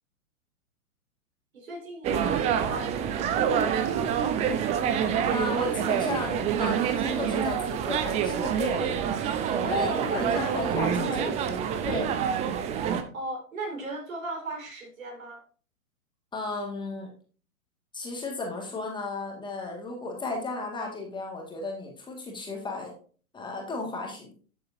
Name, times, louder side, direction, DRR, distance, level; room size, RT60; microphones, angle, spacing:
voice 1, 1.5-4.2 9.6-11.3 13.1-15.4, right 1 dB, 65° right, 1 dB, 4.8 m, -36 dB
sound 1, 2.0-13.0, right 8 dB, 15° right, 0.6 m, -27 dB
voice 2, 5.3-8.9 9.2-11.3 11.8-12.1 16.3-17.1 17.9-22.9 23.3-24.3, left 2 dB, 10° left, 1 dB, 2.0 m, -34 dB
12.0 x 7.6 x 2.7 m, 0.40 s
figure-of-eight pair, 115°, 43 cm